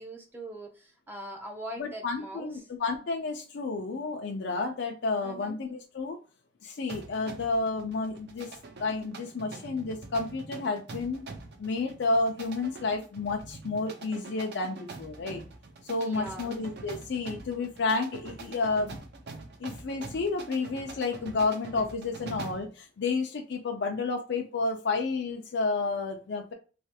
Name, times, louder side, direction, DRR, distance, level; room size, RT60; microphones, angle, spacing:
voice 1, 0.0-2.7 5.2-5.6 15.9-16.5, right 1 dB, 10° right, 1 dB, 0.4 m, -42 dB
voice 2, 1.8-6.2 6.6-8.5 8.8-11.2 11.6-15.4 15.8-19.0 19.6-26.5, left 3 dB, 65° left, 2 dB, 0.5 m, -31 dB
sound 1, 6.9-22.7, right 3 dB, 60° right, 0.6 m, -45 dB
3.2 x 2.3 x 2.7 m, 0.34 s
head